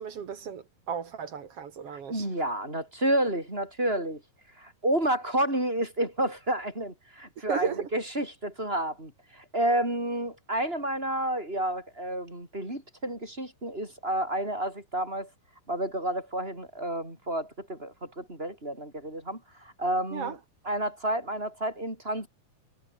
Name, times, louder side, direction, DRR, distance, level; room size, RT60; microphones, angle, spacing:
voice 1, 0.0-2.3 7.5-7.9 20.1-20.3, right 7 dB, 50° right, 2.2 m, -34 dB
voice 2, 1.9-4.2 4.6-15.3 15.7-20.4 20.6-22.3, right 1 dB, 15° right, 7.4 m, -30 dB
omnidirectional pair, 4.0 m